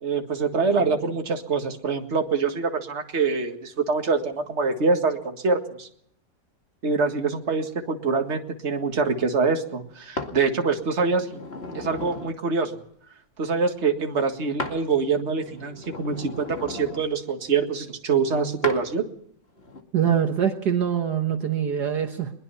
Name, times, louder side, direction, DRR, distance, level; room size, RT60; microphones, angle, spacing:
voice 1, 0.0-5.9 6.8-11.4 11.7-12.7 13.4-19.1, right 4 dB, 40° right, 4 dB, 2.1 m, -25 dB
sound 1, 10.2-10.4 11.0-12.4 14.6-14.8 15.2-17.1 18.6-18.8 19.6-19.8, left 2 dB, 35° left, 2.5 m, -35 dB
voice 2, 19.9-22.3, right 8 dB, 65° right, 5 dB, 1.8 m, -24 dB
21.5 x 21.0 x 5.7 m, 0.67 s
omnidirectional pair, 2.0 m